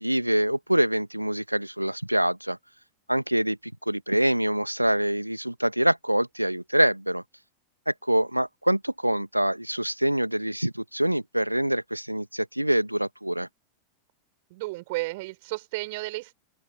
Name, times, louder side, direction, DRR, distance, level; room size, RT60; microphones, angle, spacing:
voice 1, 0.0-2.6 3.1-7.2 7.9-13.5, right 1 dB, 90° right, 1.8 m, -25 dB
voice 2, 14.5-16.3, right 22 dB, 50° right, 5.7 m, -33 dB
open air
figure-of-eight pair, 90°, 0 cm